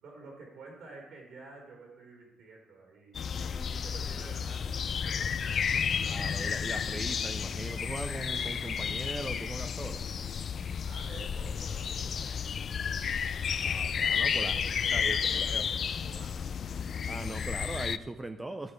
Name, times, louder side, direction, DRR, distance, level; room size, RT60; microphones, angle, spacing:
voice 1, 0.0-6.1 10.8-12.9 14.4-16.8, right 3 dB, 75° right, -2 dB, 3.9 m, -51 dB
sound 1, 3.1-18.0, left 7 dB, 55° left, 0.4 m, -32 dB
voice 2, 6.0-10.1 13.6-15.6 17.1-18.7, right 2 dB, 20° right, 7 dB, 0.5 m, -40 dB
13.0 x 6.5 x 4.8 m, 1.1 s
cardioid pair, 90°, 0 cm